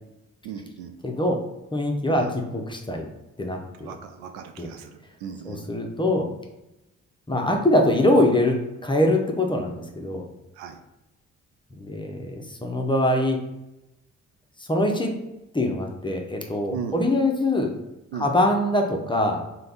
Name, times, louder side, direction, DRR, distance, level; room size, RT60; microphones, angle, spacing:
voice 1, 0.4-0.9 2.1-2.3 3.8-5.6 10.6-10.8 16.7-17.0 18.1-18.3, right 7 dB, 70° right, 7 dB, 0.5 m, -36 dB
voice 2, 1.0-1.4 1.7-3.1 3.4-3.9 4.6-4.7 5.4-6.3 7.3-10.2 11.7-13.4 14.7-15.1 15.5-17.7 18.1-19.4, left 1 dB, 15° left, 2 dB, 0.7 m, -23 dB
3.3 x 2.3 x 3.9 m, 0.94 s
hypercardioid pair, 40°, 38 cm